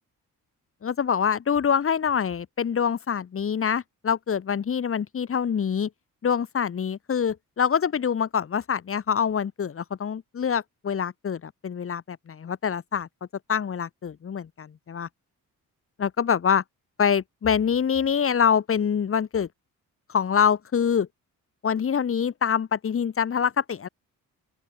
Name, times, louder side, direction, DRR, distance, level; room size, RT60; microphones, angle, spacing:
voice 1, 0.8-5.9 6.2-13.1 13.5-15.1 16.0-16.6 17.0-19.5 20.1-21.1 21.6-23.9, left 7 dB, 40° left, 6.0 m, -25 dB
open air
cardioid pair, 160°, 33 cm